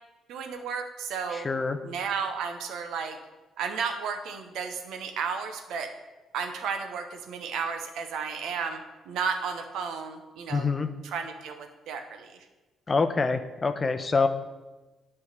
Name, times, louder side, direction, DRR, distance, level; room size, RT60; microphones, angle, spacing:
voice 1, 0.3-1.5 1.8-3.2 3.6-5.9 6.3-10.7 11.0-12.4, right 6 dB, 85° right, 6 dB, 0.9 m, -33 dB
voice 2, 1.3-1.8 10.5-10.9 12.9-14.3, left 4 dB, 30° left, 9 dB, 0.6 m, -25 dB
9.4 x 3.5 x 6.6 m, 1.2 s
cardioid pair, 90°, 0 cm